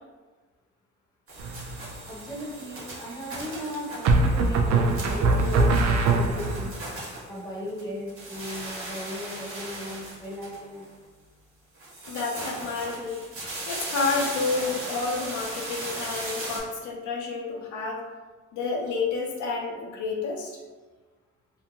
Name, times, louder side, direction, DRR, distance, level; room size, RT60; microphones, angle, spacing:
sound 1, 1.3-7.8 8.1-10.9 11.8-16.6, right 2 dB, 45° right, 1.2 m, -37 dB
sound 2, 1.4-1.9 4.0-6.7, right 3 dB, 65° right, 0.4 m, -22 dB
voice 1, 2.0-6.7 7.3-10.9, equal, 10° left, -4 dB, 0.9 m, -36 dB
voice 2, 12.1-13.2 13.7-18.0 18.5-20.6, left 4 dB, 75° left, -1 dB, 0.5 m, -30 dB
2.5 x 2.1 x 2.9 m, 1.3 s
cardioid pair, 90°, 30 cm